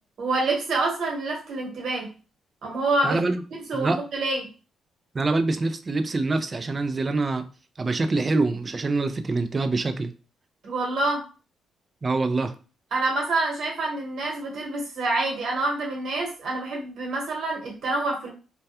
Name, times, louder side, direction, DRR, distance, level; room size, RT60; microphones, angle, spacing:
voice 1, 0.2-2.1 2.6-3.2 3.7-4.4 10.6-11.2 12.9-18.3, right 2 dB, 65° right, -1 dB, 1.1 m, -27 dB
voice 2, 3.0-3.4 3.7-4.0 5.1-7.4 7.8-10.1 12.0-12.5, right 3 dB, 30° right, 9 dB, 0.3 m, -25 dB
2.2 x 2.2 x 2.8 m, 0.35 s
cardioid pair, 80°, 0 cm